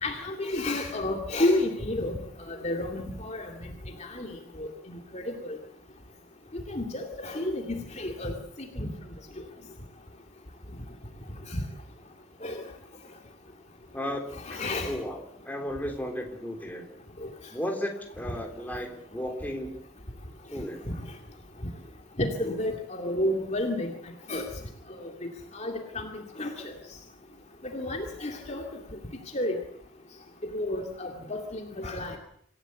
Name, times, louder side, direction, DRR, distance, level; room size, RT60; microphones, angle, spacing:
voice 1, 0.0-2.1 2.5-3.5 4.0-4.3 4.6-4.7 5.1-5.6 6.7-8.3 8.6-8.9 11.5-11.6 12.4-12.6 14.4-14.9 22.2-23.9 24.3-24.5 25.0-26.7 27.7-28.6 29.3-29.6 30.5-32.2, left 1 dB, 35° left, 3 dB, 2.3 m, -31 dB
voice 2, 13.9-14.3 14.9-16.9 17.5-19.7 20.5-20.8, equal, 10° left, 2 dB, 3.7 m, -34 dB
26.5 x 15.5 x 8.1 m, 0.65 s
head